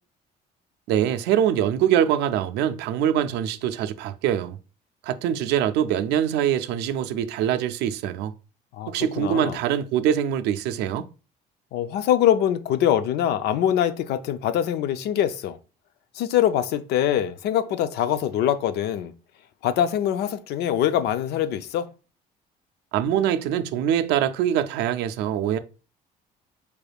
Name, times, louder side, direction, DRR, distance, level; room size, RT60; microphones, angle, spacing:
voice 1, 0.9-4.6 5.0-8.3 8.9-11.1 22.9-25.6, right 10 dB, 85° right, 0.4 m, -23 dB
voice 2, 8.7-9.6 11.7-15.6 16.1-19.1 19.6-21.9, left 10 dB, 75° left, 0.5 m, -23 dB
4.7 x 3.3 x 2.3 m
cardioid pair, 110°, 17 cm